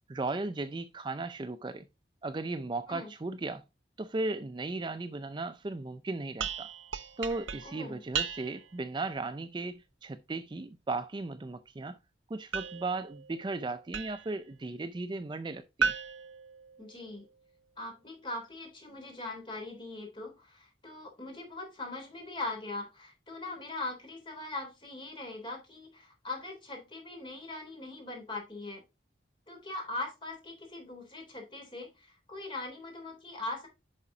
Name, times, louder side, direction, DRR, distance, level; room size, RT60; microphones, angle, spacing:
voice 1, 0.1-1.8 2.2-3.6 4.0-6.7 7.2-12.0 12.3-15.9, right 3 dB, 25° right, 0.4 m, -36 dB
sound 1, 6.4-8.8 12.5-14.4 15.8-17.3, right 6 dB, 90° right, 0.7 m, -36 dB
voice 2, 7.6-8.0 16.8-17.2 17.8-28.8 29.5-33.7, left 2 dB, 25° left, 3.3 m, -41 dB
9.7 x 5.8 x 2.7 m
head